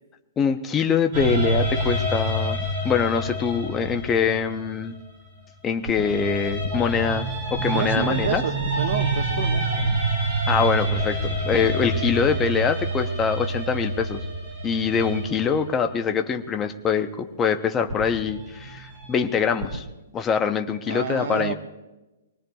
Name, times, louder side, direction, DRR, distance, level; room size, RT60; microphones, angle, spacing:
voice 1, 0.4-2.6 2.8-4.9 5.6-8.4 10.5-14.2 14.6-19.9 20.1-21.5, left 6 dB, 10° left, 6 dB, 0.6 m, -24 dB
sound 1, 1.1-5.3 5.9-15.9 17.9-19.8, right 2 dB, 25° right, 3.0 m, -27 dB
voice 2, 7.7-10.0 11.5-11.8 20.9-21.5, right 6 dB, 45° right, 5 dB, 1.2 m, -29 dB
25.0 x 18.5 x 2.3 m, 1.1 s
hypercardioid pair, 180°, 0 cm